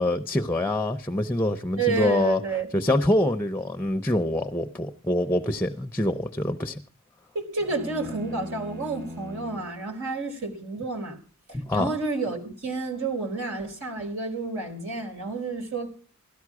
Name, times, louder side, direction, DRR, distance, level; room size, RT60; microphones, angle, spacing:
voice 1, 0.0-2.4 2.7-6.8 11.5-11.9, left 1 dB, 10° left, 0.7 m, -25 dB
voice 2, 1.8-2.7 7.3-11.2 11.7-15.9, right 3 dB, 65° right, 4.4 m, -30 dB
sound 1, 7.6-9.9, left 1 dB, 40° right, 1.4 m, -40 dB
16.5 x 13.0 x 4.8 m
head